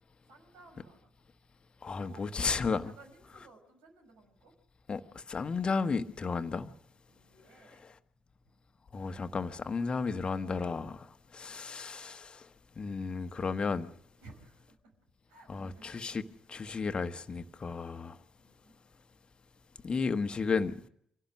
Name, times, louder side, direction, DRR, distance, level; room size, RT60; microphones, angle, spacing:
voice 1, 0.3-1.1 2.0-2.2 3.0-4.5 7.1-7.9 11.3-11.6 14.2-14.9 15.3-16.2 18.4-18.8, right 3 dB, 70° right, 5.5 m, -57 dB
voice 2, 1.8-2.9 4.9-6.7 8.9-12.5 12.8-13.9 15.5-16.2 16.5-18.2 19.8-20.9, left 4 dB, 35° left, 1.3 m, -33 dB
26.0 x 17.0 x 6.2 m
figure-of-eight pair, 45°, 3 cm